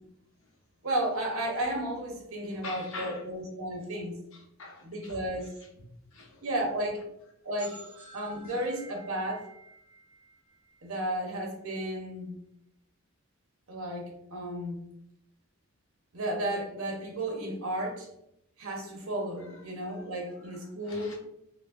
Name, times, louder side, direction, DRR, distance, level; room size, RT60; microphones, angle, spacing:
voice 1, 0.8-4.2 4.8-5.5 6.4-7.0 7.4-7.8 8.1-9.5 10.8-12.3 13.7-14.8 16.1-18.1 18.6-21.1, right 1 dB, 70° right, 0 dB, 1.0 m, -33 dB
voice 2, 2.5-3.2 4.3-5.5 5.8-6.4 19.4-19.6 19.9-21.1, left 3 dB, 65° left, -1 dB, 0.9 m, -46 dB
sound 1, 7.6-11.2, right 2 dB, 10° right, 1.3 m, -51 dB
5.1 x 2.2 x 2.6 m, 0.79 s
head